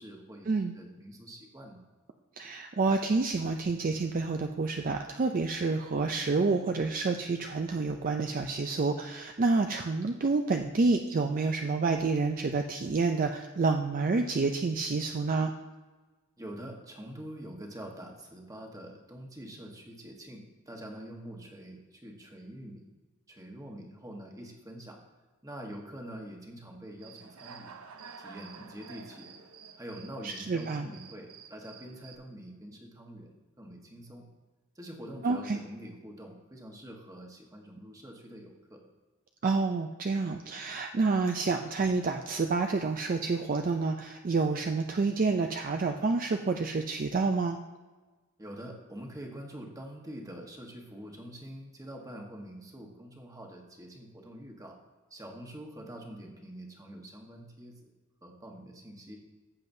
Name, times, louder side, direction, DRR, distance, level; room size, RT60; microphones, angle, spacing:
voice 1, 0.0-1.8 16.4-22.9 23.3-25.0 25.4-27.7 28.2-29.3 29.8-34.3 34.7-38.8 48.4-54.8 55.1-57.9 58.2-59.2, right 1 dB, 15° right, 1 dB, 1.2 m, -45 dB
voice 2, 2.4-15.5 30.2-30.9 35.2-35.6 39.4-47.6, right 3 dB, 40° right, 5 dB, 0.4 m, -28 dB
Human voice / Cricket, 27.0-32.2, right 6 dB, 90° right, 0.8 m, -50 dB
14.5 x 7.6 x 2.7 m, 1.3 s
head